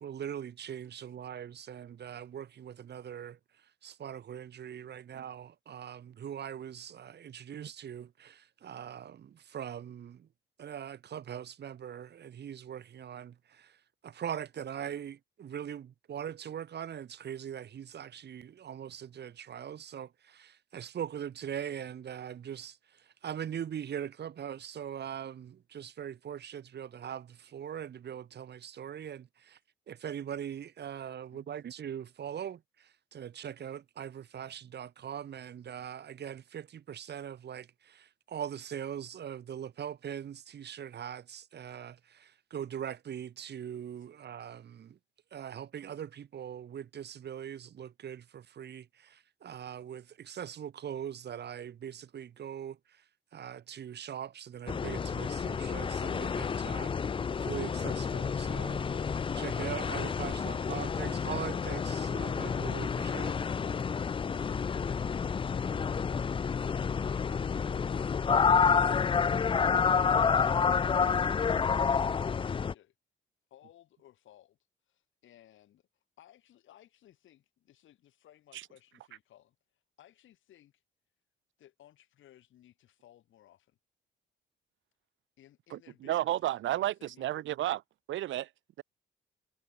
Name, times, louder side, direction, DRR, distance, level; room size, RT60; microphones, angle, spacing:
voice 1, 0.0-10.3 10.6-29.6 29.9-45.0 45.3-53.0 53.3-56.9 57.4-63.4, right 9 dB, 60° right, 2.5 m, -41 dB
voice 2, 31.1-31.5 66.6-68.2 69.6-70.6 72.2-72.9 73.5-74.6 74.9-80.8 81.6-83.8 85.4-87.8, left 12 dB, 75° left, 6.7 m, -60 dB
sound 1, 54.7-72.7, left 6 dB, 25° left, 0.4 m, -29 dB
voice 3, 85.7-87.8 88.1-88.5, right 14 dB, 75° right, 0.8 m, -32 dB
cardioid pair, 90°, 20 cm